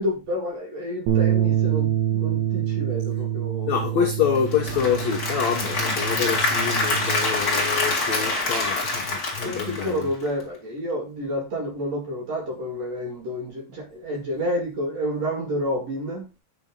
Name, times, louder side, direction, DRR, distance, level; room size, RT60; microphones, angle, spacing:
voice 1, 0.0-4.0 8.0-8.5 9.4-16.2, equal, 45° right, 2.8 m, -30 dB
sound 1, 1.1-7.3, right 11 dB, 85° right, 4.3 m, -26 dB
voice 2, 3.6-10.1, left 7 dB, 90° left, 1.5 m, -26 dB
Applause / Crowd, 4.3-10.4, left 2 dB, 35° left, 1.6 m, -26 dB
9.0 x 5.9 x 3.8 m
omnidirectional pair, 5.1 m